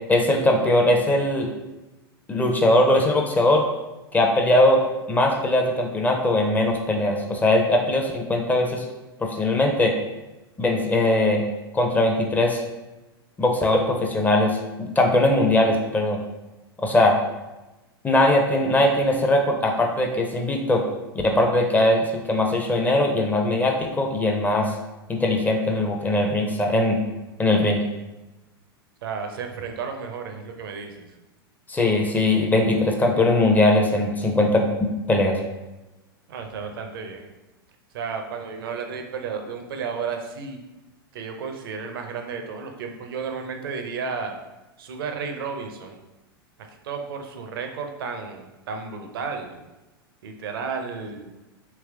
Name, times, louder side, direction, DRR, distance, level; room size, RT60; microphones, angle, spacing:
voice 1, 0.1-1.5 2.3-3.6 4.1-4.8 5.1-8.8 9.2-9.9 10.6-11.5 11.7-12.6 13.4-16.2 16.8-17.2 18.0-20.8 21.2-24.7 25.1-27.0 27.4-27.8 31.7-35.4, left 1 dB, 15° left, 2 dB, 0.6 m, -20 dB
voice 2, 29.0-31.1 36.3-37.3 37.9-40.6 41.1-44.4 44.8-46.0 46.7-49.6 50.2-51.3, right 5 dB, 65° right, 4 dB, 0.6 m, -33 dB
3.3 x 2.9 x 3.4 m, 1.1 s
hypercardioid pair, 95°, 13 cm